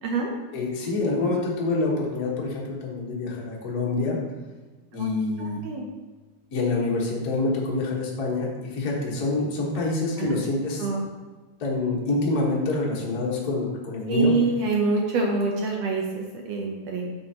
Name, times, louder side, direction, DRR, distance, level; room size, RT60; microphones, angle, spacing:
voice 1, 0.5-4.2 4.9-5.6 6.5-10.8 11.6-14.3, left 3 dB, 40° left, -4 dB, 1.4 m, -26 dB
voice 2, 5.4-5.8 10.2-10.3 10.8-11.1 14.1-17.1, right 3 dB, 70° right, 1 dB, 1.7 m, -26 dB
9.2 x 6.3 x 2.9 m, 1.3 s
omnidirectional pair, 3.6 m